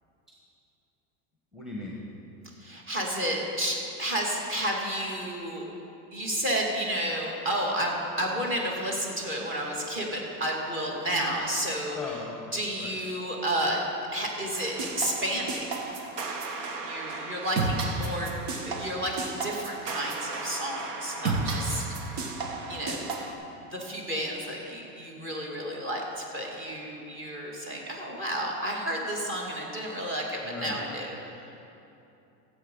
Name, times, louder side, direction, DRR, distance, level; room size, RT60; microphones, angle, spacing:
voice 1, 1.5-2.0 11.9-13.0 30.4-30.8, left 2 dB, ahead, -3 dB, 1.4 m, -38 dB
voice 2, 2.6-5.6 6.1-12.0 12.5-15.6 16.8-18.3 18.6-21.9 22.7-23.2 23.7-31.1, right 1 dB, 25° right, -1 dB, 2.4 m, -31 dB
sound 1, 14.5-23.3, right 3 dB, 65° right, 1.7 m, -33 dB
15.5 x 8.1 x 5.5 m, 2.8 s
supercardioid pair, 135°, 50 cm